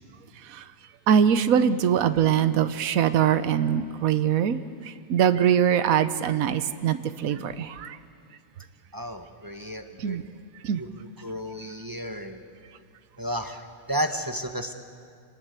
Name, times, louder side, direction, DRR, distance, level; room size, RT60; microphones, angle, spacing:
voice 1, 1.1-4.6 5.1-8.0 10.0-10.2 10.6-10.8, right 8 dB, 70° right, 12 dB, 1.3 m, -22 dB
voice 2, 8.9-10.2 10.8-12.4 13.2-14.7, equal, 15° right, 5 dB, 1.2 m, -33 dB
26.5 x 20.0 x 8.2 m, 2.4 s
omnidirectional pair, 1.5 m